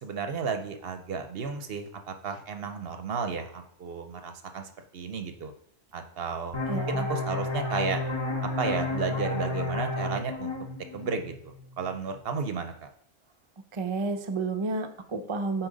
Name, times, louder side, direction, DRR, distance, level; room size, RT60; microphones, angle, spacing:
voice 1, 0.0-5.5 5.9-8.0 8.4-10.5 10.9-12.9, right 5 dB, 60° right, 7 dB, 0.8 m, -33 dB
sound 1, 6.5-11.9, left 2 dB, 25° left, 1.0 m, -32 dB
voice 2, 6.7-7.1 13.7-15.7, right 3 dB, 40° right, 5 dB, 0.4 m, -31 dB
8.7 x 4.4 x 3.9 m, 0.73 s
omnidirectional pair, 1.3 m